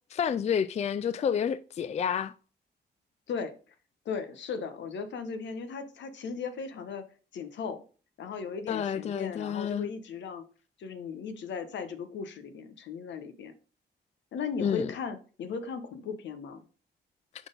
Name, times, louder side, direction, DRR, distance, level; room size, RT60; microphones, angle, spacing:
voice 1, 0.1-2.3 8.7-9.9 14.6-14.9, left 8 dB, 40° left, 0.4 m, -29 dB
voice 2, 4.0-7.0 7.3-7.8 8.2-10.4 10.8-13.5 14.3-16.6, left 5 dB, 80° left, 1.1 m, -37 dB
6.0 x 4.1 x 5.2 m
cardioid pair, 105°, 19 cm